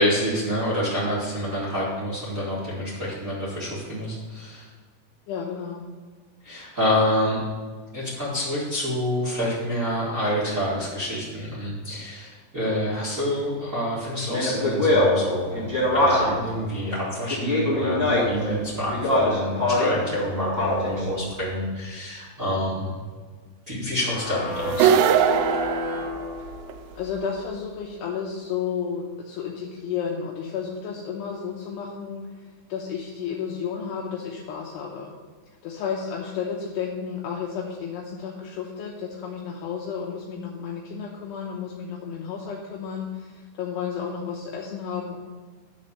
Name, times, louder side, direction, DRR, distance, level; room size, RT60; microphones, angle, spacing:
voice 1, 0.0-4.6 6.4-7.4 7.9-15.6 15.9-22.9 23.7-24.9, equal, 70° right, -9 dB, 0.7 m, -27 dB
voice 2, 5.3-5.8 27.0-32.2 32.7-35.1 35.6-45.2, left 7 dB, 75° left, -2 dB, 2.8 m, -32 dB
Speech, 14.3-16.5 17.3-18.4 18.9-20.0 20.4-21.0, left 1 dB, 15° right, 1.7 m, -22 dB
sound 1, 24.0-26.9, left 3 dB, 40° left, 2.8 m, -32 dB
sound 2, 24.7-26.7, right 8 dB, 90° right, 2.8 m, -21 dB
11.0 x 4.3 x 6.6 m, 1.4 s
omnidirectional pair, 5.0 m